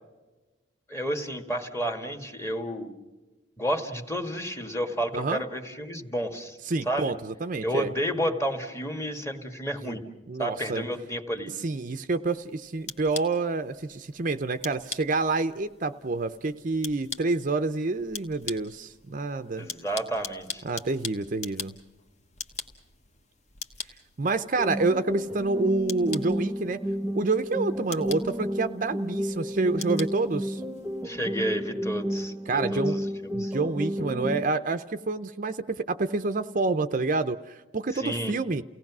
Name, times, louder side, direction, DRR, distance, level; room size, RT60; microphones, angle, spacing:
voice 1, 0.9-2.9 3.6-6.6 6.8-7.1 7.6-10.0 10.4-11.5 19.6-20.6 31.0-33.5 37.9-38.3, equal, 15° left, 6 dB, 1.6 m, -31 dB
voice 2, 6.7-7.9 9.8-10.0 10.3-10.8 11.6-19.7 20.6-21.8 24.2-26.8 27.1-30.6 32.5-33.0 33.3-38.6, right 3 dB, 40° right, 10 dB, 0.6 m, -28 dB
sound 1, 12.2-31.0, left 5 dB, 35° left, 1.2 m, -43 dB
sound 2, 24.6-34.6, equal, 5° right, 1.0 m, -32 dB
29.5 x 17.5 x 6.1 m, 1.2 s
head